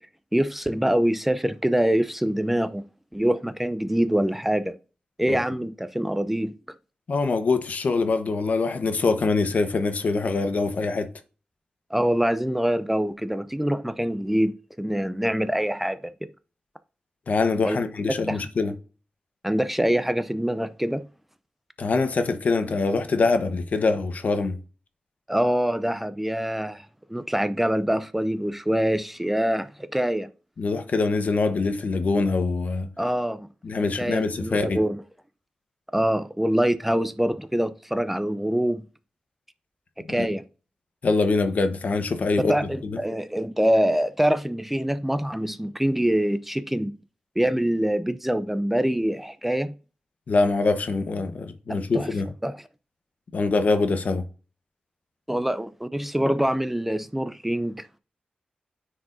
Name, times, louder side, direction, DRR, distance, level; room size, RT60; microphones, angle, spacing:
voice 1, 0.3-2.8 3.1-4.7 5.2-6.5 11.9-16.1 17.6-17.8 18.3-18.4 19.4-21.1 25.3-30.3 33.0-33.5 34.0-35.0 35.9-38.9 40.1-40.4 42.5-46.9 47.4-49.8 51.7-52.1 52.4-52.6 55.3-57.9, equal, 5° right, 0.5 m, -25 dB
voice 2, 7.1-11.1 17.3-18.7 21.8-24.6 30.6-32.9 33.6-34.8 40.1-40.3 41.0-43.0 50.3-52.3 53.3-54.2, left 3 dB, 60° left, 1.0 m, -24 dB
9.6 x 4.7 x 2.6 m
cardioid pair, 75°, 3 cm